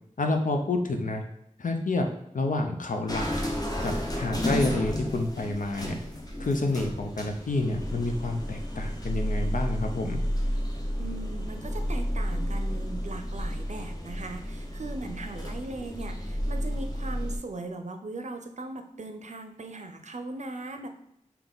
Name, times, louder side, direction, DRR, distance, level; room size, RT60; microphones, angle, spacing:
voice 1, 0.2-1.2 1.6-2.1 2.3-3.3 3.8-6.0 6.4-10.2, left 2 dB, 80° left, 4 dB, 0.6 m, -29 dB
sound 1, 3.1-17.4, equal, 30° left, 0.8 m, -32 dB
voice 2, 11.0-20.9, right 2 dB, 65° right, 6 dB, 0.5 m, -39 dB
3.8 x 2.9 x 3.6 m, 0.78 s
wide cardioid pair, 50°, 13 cm